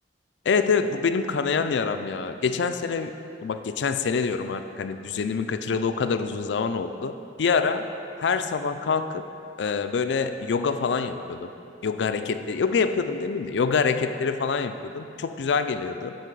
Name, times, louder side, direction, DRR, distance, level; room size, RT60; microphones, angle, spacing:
voice 1, 0.5-3.1 3.4-7.1 7.4-7.9 8.2-9.2 9.6-11.5 11.8-16.2, left 5 dB, 85° left, 9 dB, 0.4 m, -26 dB
8.3 x 4.0 x 6.7 m, 2.7 s
head